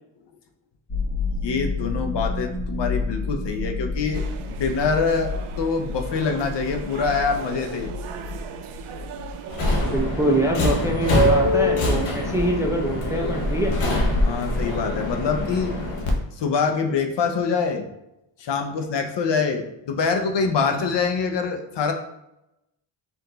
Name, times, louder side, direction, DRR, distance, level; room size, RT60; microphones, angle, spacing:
sound 1, 0.9-9.3, left 4 dB, 30° left, 0.9 m, -30 dB
voice 1, 1.3-7.9 14.2-15.8 16.4-17.9 18.4-21.9, left 5 dB, 55° left, 5 dB, 0.7 m, -25 dB
sound 2, 4.1-10.5, right 8 dB, 80° right, 0.6 m, -38 dB
Subway metro underground, 9.5-16.1, left 1 dB, 85° left, 0.9 m, -23 dB
voice 2, 9.9-13.7, right 1 dB, 5° right, 0 dB, 0.4 m, -24 dB
4.5 x 2.7 x 3.8 m, 0.88 s
wide cardioid pair, 125°, 50 cm